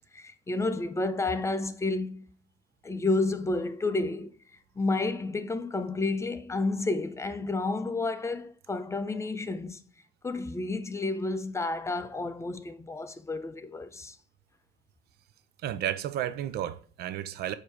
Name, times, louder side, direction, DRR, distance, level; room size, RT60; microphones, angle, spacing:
voice 1, 0.1-2.3 2.8-4.3 4.8-9.8 10.2-14.2, left 3 dB, 15° left, 0.5 m, -30 dB
voice 2, 15.6-17.5, right 11 dB, 70° right, 0.5 m, -32 dB
7.6 x 2.8 x 4.7 m
cardioid pair, 110°, 17 cm